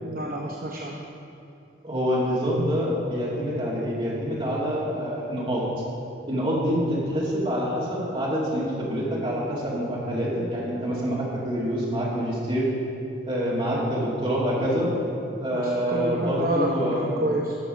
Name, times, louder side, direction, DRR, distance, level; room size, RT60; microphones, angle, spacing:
voice 1, 0.0-1.0 15.5-17.5, right 1 dB, 45° right, -1 dB, 0.7 m, -28 dB
voice 2, 1.8-5.6 6.3-12.7 13.2-14.9 15.4-17.1, equal, 25° right, -6 dB, 2.3 m, -26 dB
12.0 x 6.8 x 5.2 m, 2.7 s
head